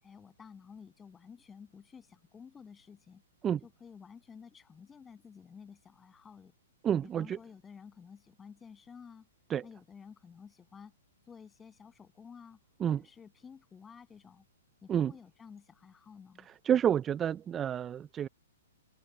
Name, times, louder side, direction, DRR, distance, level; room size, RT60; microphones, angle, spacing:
voice 1, 0.0-3.2 3.6-6.5 7.0-9.3 9.6-10.9 11.3-14.4 14.8-16.5, left 6 dB, 15° left, 7.7 m, -52 dB
voice 2, 6.8-7.4 9.5-9.6 12.8-13.0 14.9-15.1 16.6-18.3, right 9 dB, 20° right, 0.4 m, -29 dB
hypercardioid pair, 130°, 0 cm